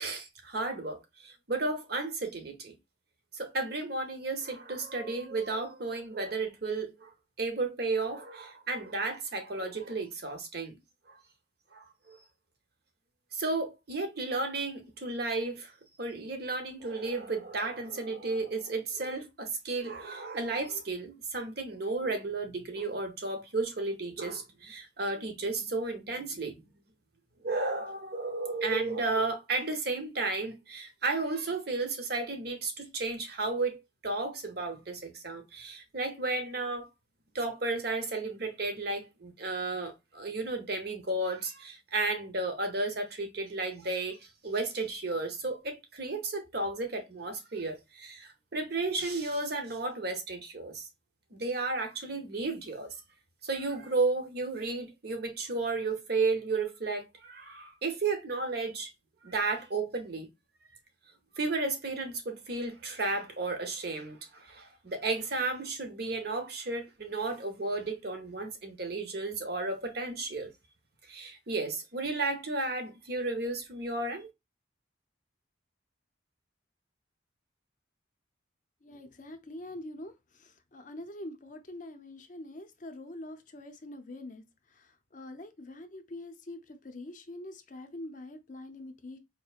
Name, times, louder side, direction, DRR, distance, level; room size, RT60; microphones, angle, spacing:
voice 1, 0.0-2.8 3.3-7.1 7.4-10.8 11.7-12.2 13.3-26.7 27.4-36.9 37.3-50.9 51.3-52.9 53.4-58.9 59.2-60.3 61.4-70.5 71.1-74.3, right 3 dB, 55° right, 0.9 m, -33 dB
voice 2, 78.8-89.2, left 1 dB, 40° left, 0.5 m, -45 dB
4.5 x 2.8 x 2.4 m
head